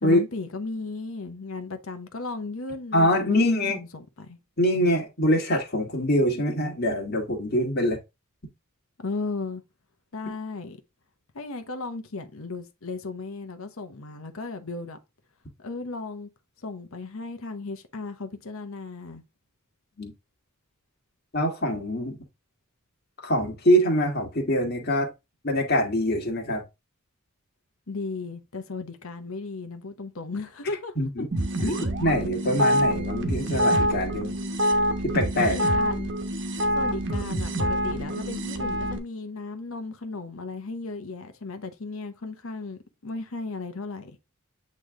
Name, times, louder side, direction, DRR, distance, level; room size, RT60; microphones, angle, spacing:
voice 1, 0.0-4.4 9.0-9.6 10.1-10.8 11.3-15.0 15.6-16.3 16.6-19.2 27.9-31.3 35.4-36.1 36.7-44.1, left 3 dB, 75° left, 1.0 m, -35 dB
voice 2, 2.9-3.8 4.6-8.0 20.0-20.1 21.3-22.2 23.2-25.1 25.4-26.6 31.0-31.3 31.6-34.4 35.0-35.6, equal, 50° left, 1.8 m, -24 dB
sound 1, 31.3-39.0, equal, 55° right, 1.1 m, -26 dB
8.4 x 3.2 x 3.7 m
head